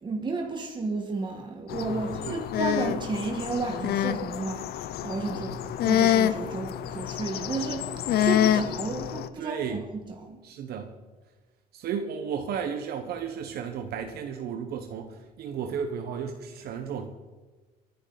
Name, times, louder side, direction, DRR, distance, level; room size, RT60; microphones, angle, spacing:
voice 1, 0.0-5.5 5.8-10.4, right 3 dB, 25° right, 2 dB, 1.8 m, -32 dB
sound 1, 1.7-9.3, left 10 dB, 65° left, 0.8 m, -27 dB
voice 2, 1.9-2.4 5.3-5.7 9.4-9.8 10.4-10.9 11.7-17.1, right 7 dB, 70° right, 6 dB, 1.3 m, -34 dB
23.0 x 11.0 x 4.2 m, 1.3 s
cardioid pair, 110°, 17 cm